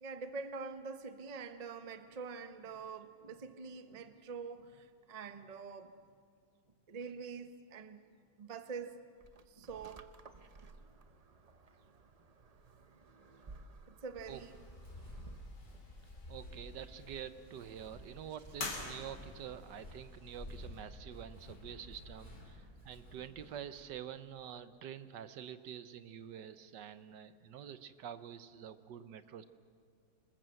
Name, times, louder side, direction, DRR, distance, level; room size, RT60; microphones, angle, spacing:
voice 1, 0.0-5.9 6.9-8.0 8.4-9.0 9.5-10.0 13.9-14.6, right 5 dB, 30° right, 9 dB, 0.8 m, -45 dB
sound 1, 9.2-15.6, right 3 dB, 55° right, 0.4 m, -57 dB
Walk footsteps, 14.2-23.8, left 1 dB, 25° left, 4.2 m, -52 dB
sound 2, 14.3-22.7, left 3 dB, 65° left, 3.4 m, -50 dB
voice 2, 16.3-29.4, right 9 dB, 70° right, 12 dB, 1.4 m, -47 dB
26.0 x 20.0 x 7.6 m, 2.1 s
omnidirectional pair, 2.0 m